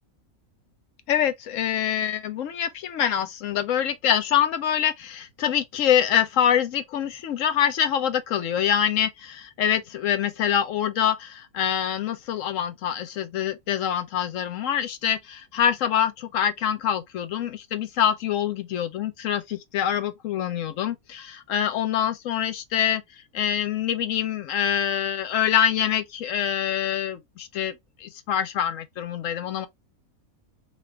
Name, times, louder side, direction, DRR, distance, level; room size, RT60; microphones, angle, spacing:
voice 1, 1.1-23.0 23.3-27.7 28.0-29.7, left 9 dB, 70° left, 0.9 m, -25 dB
3.0 x 2.5 x 3.2 m
omnidirectional pair, 1.5 m